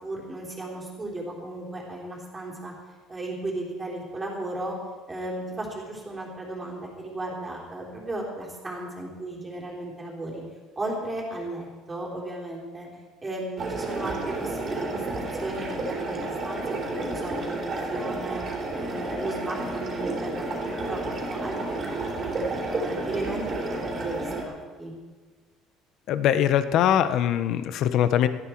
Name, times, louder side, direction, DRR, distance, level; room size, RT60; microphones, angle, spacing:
voice 1, 0.0-2.7 3.1-4.7 5.1-10.4 10.8-12.9 13.2-18.4 18.7-20.5 20.8-22.3 22.7-23.4 23.8-24.9, right 1 dB, 15° right, -2 dB, 3.8 m, -35 dB
sound 1, 13.6-24.4, right 2 dB, 30° right, 3.4 m, -31 dB
voice 2, 26.1-28.3, left 10 dB, 55° left, 12 dB, 0.9 m, -22 dB
18.0 x 14.0 x 4.6 m, 1.4 s
cardioid pair, 155°, 0 cm